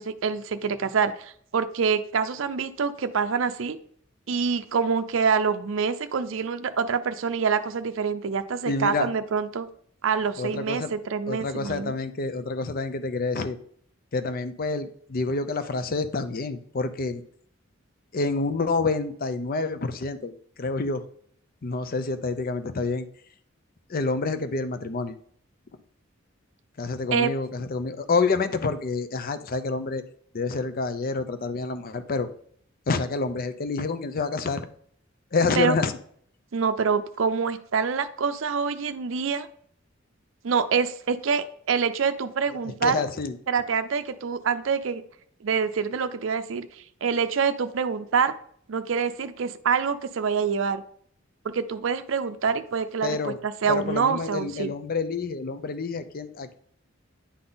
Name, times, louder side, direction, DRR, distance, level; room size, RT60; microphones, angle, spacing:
voice 1, 0.0-3.8 4.3-9.7 10.0-11.9 27.1-27.3 35.6-35.7 36.5-39.5 40.4-43.0 43.5-45.0 45.4-48.3 48.7-50.8 51.4-54.7, right 6 dB, 70° right, 9 dB, 0.5 m, -26 dB
voice 2, 8.7-9.1 10.4-10.9 11.3-13.6 14.1-17.2 18.1-20.3 20.6-21.0 21.6-23.1 23.9-25.1 26.8-30.0 30.3-32.3 32.9-34.7 35.3-36.0 42.6-43.4 53.0-53.4 53.7-56.5, left 3 dB, 45° left, 10 dB, 0.6 m, -28 dB
9.8 x 3.8 x 3.9 m, 0.62 s
head